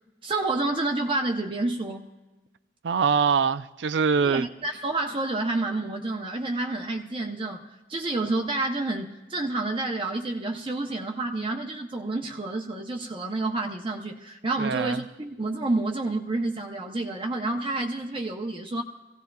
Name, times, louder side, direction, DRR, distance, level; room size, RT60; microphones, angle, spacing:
voice 1, 0.2-2.1 4.2-18.8, right 2 dB, 30° right, 0.7 m, -29 dB
voice 2, 2.8-4.5 14.6-15.0, right 6 dB, 90° right, 0.5 m, -23 dB
25.0 x 17.0 x 2.3 m
head